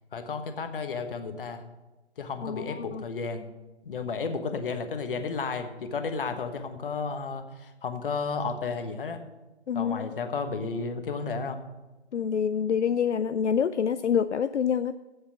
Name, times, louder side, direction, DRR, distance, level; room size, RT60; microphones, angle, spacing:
voice 1, 0.1-1.6 2.2-3.5 3.8-9.2 9.7-11.6, left 4 dB, 50° left, 8 dB, 1.3 m, -32 dB
voice 2, 2.4-3.0 9.7-10.1 12.1-14.9, left 7 dB, 80° left, 12 dB, 0.5 m, -27 dB
8.5 x 8.0 x 7.5 m, 1.1 s
figure-of-eight pair, 135°, 34 cm